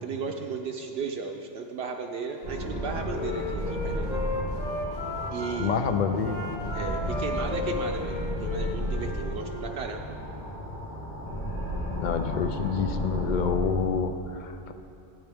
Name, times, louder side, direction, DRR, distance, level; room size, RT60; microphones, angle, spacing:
voice 1, 0.0-4.2 5.3-5.8 6.7-10.2, right 5 dB, 70° right, 2 dB, 0.8 m, -35 dB
Wind instrument woodwind instrument, 2.3-5.6 6.1-9.7, left 2 dB, 40° left, 0.9 m, -35 dB
sound 1, 2.4-13.7, equal, 80° left, 2.2 m, -33 dB
voice 2, 5.6-6.5 12.0-14.7, left 6 dB, 60° left, 8 dB, 0.5 m, -28 dB
11.5 x 8.8 x 3.5 m, 2.9 s
omnidirectional pair, 1.1 m